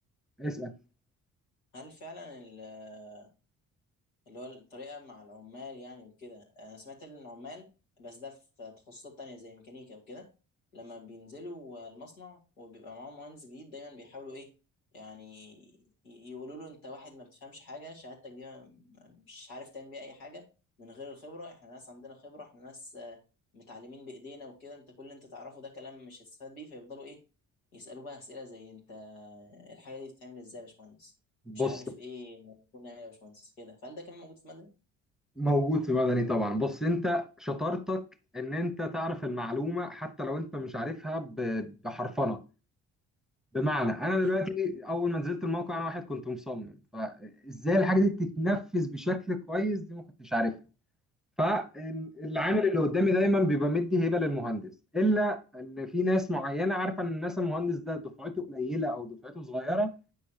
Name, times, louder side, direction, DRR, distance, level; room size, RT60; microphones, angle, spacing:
voice 1, 0.4-0.7 31.5-31.8 35.4-38.0 38.3-42.4 43.5-50.5 51.4-59.9, left 1 dB, ahead, 0.8 m, -29 dB
voice 2, 1.7-3.3 4.3-7.7 8.0-10.3 10.7-14.5 14.9-20.4 20.8-23.2 23.5-27.2 27.7-31.1 31.5-34.7 44.2-44.4, left 2 dB, 90° left, 1.8 m, -46 dB
8.5 x 6.4 x 2.7 m
hypercardioid pair, 50°, 40 cm